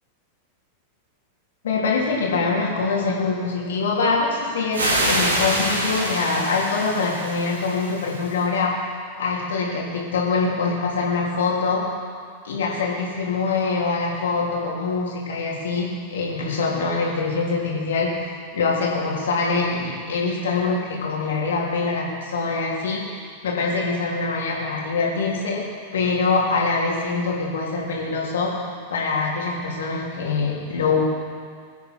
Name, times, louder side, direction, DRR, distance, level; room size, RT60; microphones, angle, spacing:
voice 1, 1.6-8.8 9.2-11.9 12.4-25.7 25.9-31.0, left 4 dB, 65° left, -3 dB, 3.5 m, -24 dB
sound 1, 4.7-8.4, right 1 dB, 70° right, 4.3 m, -25 dB
23.0 x 9.3 x 4.7 m, 2.1 s
figure-of-eight pair, 90°, 0 cm